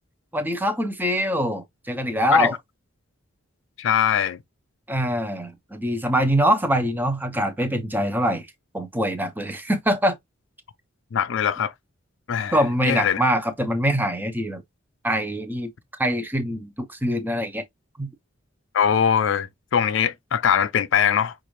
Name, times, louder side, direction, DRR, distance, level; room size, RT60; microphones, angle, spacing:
voice 1, 0.3-2.6 4.9-8.5 8.7-10.2 12.5-14.6 15.0-15.7 16.0-17.6 18.0-18.1, equal, 10° right, 0.6 m, -24 dB
voice 2, 3.8-4.4 11.1-11.7 12.3-12.6 12.8-13.2 18.7-21.3, left 8 dB, 60° left, 0.4 m, -21 dB
5.3 x 2.5 x 3.0 m
head